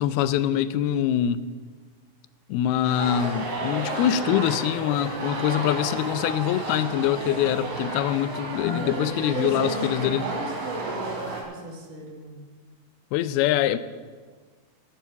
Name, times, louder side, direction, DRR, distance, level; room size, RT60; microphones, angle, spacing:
voice 1, 0.0-1.4 2.5-10.2 13.1-13.8, left 11 dB, 90° left, 13 dB, 2.6 m, -24 dB
sound 1, 2.8-11.4, right 2 dB, 40° right, 4.0 m, -32 dB
voice 2, 9.3-12.4, right 2 dB, 60° right, 0 dB, 3.6 m, -34 dB
12.5 x 12.5 x 7.0 m, 1.5 s
omnidirectional pair, 4.3 m